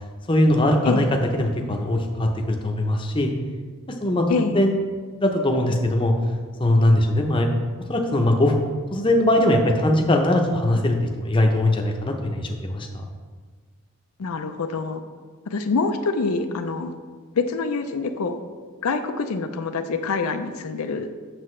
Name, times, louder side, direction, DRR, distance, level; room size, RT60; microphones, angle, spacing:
voice 1, 0.3-1.0 1.3-3.3 4.0-4.7 5.1-6.1 6.6-7.5 7.9-8.5 8.9-13.0, left 1 dB, 20° left, 3 dB, 0.6 m, -21 dB
voice 2, 4.3-4.6 14.2-15.0 15.5-16.9 17.3-18.4 18.8-21.1, left 4 dB, 80° left, 7 dB, 0.5 m, -25 dB
7.7 x 6.6 x 3.2 m, 1.5 s
head